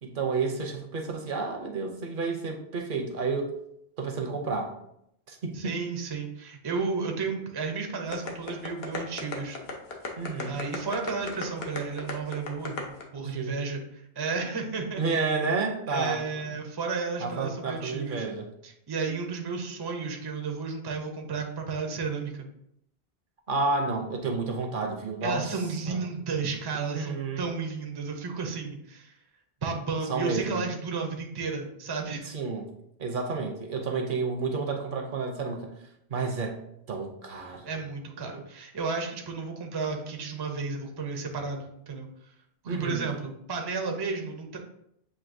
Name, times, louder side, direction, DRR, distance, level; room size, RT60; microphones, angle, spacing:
voice 1, 0.0-3.5 4.0-4.7 5.3-5.8 10.2-10.6 13.2-13.6 15.0-16.5 17.2-18.5 23.5-25.6 25.9-26.0 26.7-27.4 30.1-30.6 32.2-32.6 33.0-35.7 36.1-36.6 36.9-37.7 42.6-43.1, right 4 dB, 60° right, 2 dB, 0.8 m, -30 dB
voice 2, 5.5-9.6 10.5-12.8 13.1-15.3 15.9-18.3 18.6-22.5 25.2-29.1 29.6-32.3 37.7-42.1 42.6-44.6, right 4 dB, 30° right, 3 dB, 0.5 m, -33 dB
sound 1, 8.1-13.0, left 4 dB, 70° left, 1.0 m, -34 dB
7.3 x 2.7 x 2.6 m, 0.75 s
omnidirectional pair, 1.1 m